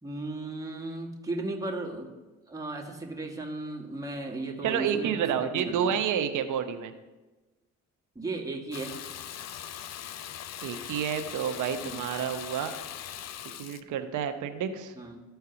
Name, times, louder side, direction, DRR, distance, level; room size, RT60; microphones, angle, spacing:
voice 1, 0.0-2.1 2.5-6.0 8.1-8.9 11.8-12.0 14.9-15.2, right 2 dB, 10° right, 0 dB, 1.8 m, -36 dB
voice 2, 4.6-6.9 10.6-12.7 13.6-14.9, right 8 dB, 80° right, 8 dB, 1.0 m, -29 dB
Water tap faucet / Bathtub (filling or washing), 8.7-13.8, left 10 dB, 60° left, 0.6 m, -40 dB
13.5 x 4.6 x 6.9 m, 1.2 s
cardioid pair, 90°, 30 cm